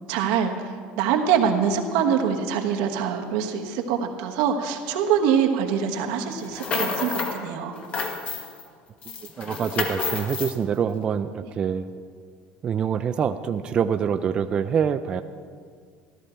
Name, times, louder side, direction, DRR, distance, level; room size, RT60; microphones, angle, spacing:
voice 1, 0.1-7.8 11.4-11.5, right 7 dB, 85° right, 4 dB, 1.3 m, -24 dB
sound 1, 6.4-7.4 7.7-8.6 9.0-10.6, left 4 dB, 35° left, 1.3 m, -29 dB
voice 2, 9.2-11.9 12.6-15.2, right 7 dB, 25° right, 9 dB, 0.3 m, -25 dB
14.0 x 12.0 x 4.5 m, 2.1 s
cardioid pair, 165°, 4 cm